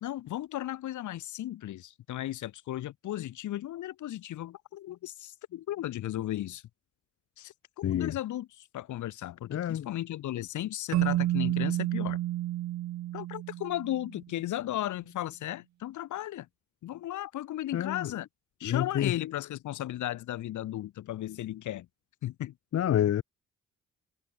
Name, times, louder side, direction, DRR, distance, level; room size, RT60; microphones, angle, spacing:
voice 1, 0.0-6.6 7.4-7.5 7.9-12.2 13.1-16.5 16.8-18.3 18.6-21.9 22.2-22.5, left 13 dB, 75° left, 1.6 m, -35 dB
voice 2, 7.8-8.2 9.5-9.9 17.7-18.1 18.6-19.1 22.7-23.2, left 11 dB, 55° left, 0.9 m, -28 dB
Keyboard (musical), 10.9-14.2, right 14 dB, 65° right, 0.6 m, -30 dB
cardioid pair, 90°, 30 cm